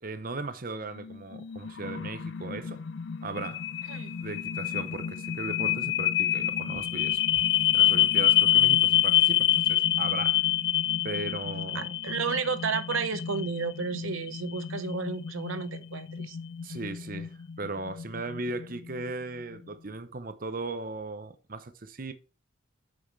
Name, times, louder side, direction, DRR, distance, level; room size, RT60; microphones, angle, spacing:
voice 1, 0.0-2.8 3.2-3.7 4.2-10.4 11.0-11.9 16.6-22.1, right 3 dB, 45° right, 0.7 m, -37 dB
sound 1, 1.0-19.0, left 12 dB, 55° left, 0.4 m, -27 dB
voice 2, 11.7-16.4, right 5 dB, 75° right, 0.7 m, -32 dB
7.9 x 6.3 x 3.3 m
head